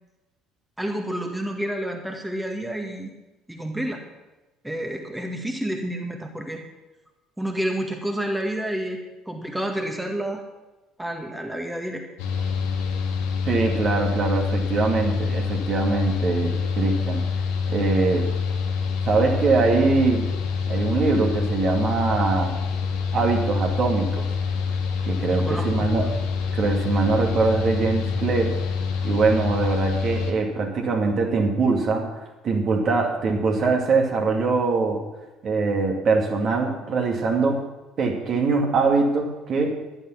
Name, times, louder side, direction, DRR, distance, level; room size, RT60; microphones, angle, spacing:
voice 1, 0.8-3.1 3.5-4.0 4.6-6.6 7.4-10.4 11.0-12.0 25.4-25.9, right 1 dB, 5° right, 3 dB, 1.8 m, -29 dB
Mechanical fan, 12.2-30.3, left 5 dB, 65° left, 1.9 m, -26 dB
voice 2, 13.4-17.3 17.7-18.3 19.0-20.3 20.7-22.6 23.1-24.3 25.0-26.1 26.5-28.6 29.0-32.1 32.4-35.0 35.4-37.6 38.0-39.8, right 4 dB, 45° right, 1 dB, 2.3 m, -22 dB
12.5 x 11.5 x 5.9 m, 1.1 s
figure-of-eight pair, 55°, 0 cm